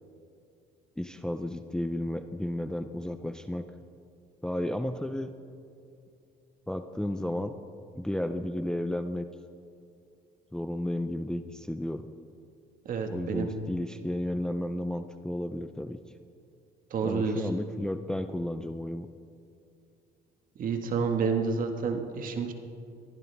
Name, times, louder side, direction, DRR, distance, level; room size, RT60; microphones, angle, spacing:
voice 1, 1.0-3.7 4.4-5.4 6.7-7.5 7.9-9.3 10.5-12.1 13.1-16.0 17.0-19.1, left 1 dB, 5° left, 8 dB, 0.6 m, -33 dB
voice 2, 12.9-13.5 16.9-17.5 20.6-22.5, right 5 dB, 55° right, 5 dB, 1.8 m, -29 dB
23.0 x 15.0 x 3.6 m, 2.5 s
cardioid pair, 110°, 17 cm